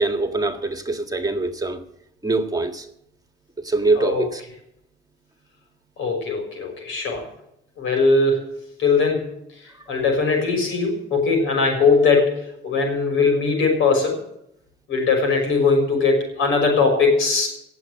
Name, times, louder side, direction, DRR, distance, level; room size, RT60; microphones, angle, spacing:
voice 1, 0.0-1.8 2.2-2.8 3.7-4.4, right 3 dB, 20° right, 6 dB, 1.8 m, -23 dB
voice 2, 4.0-4.3 6.0-7.3 7.8-9.3 9.6-14.2 14.9-17.5, left 4 dB, 85° left, 3 dB, 6.0 m, -20 dB
17.5 x 7.6 x 8.0 m, 0.78 s
cardioid pair, 90°, 20 cm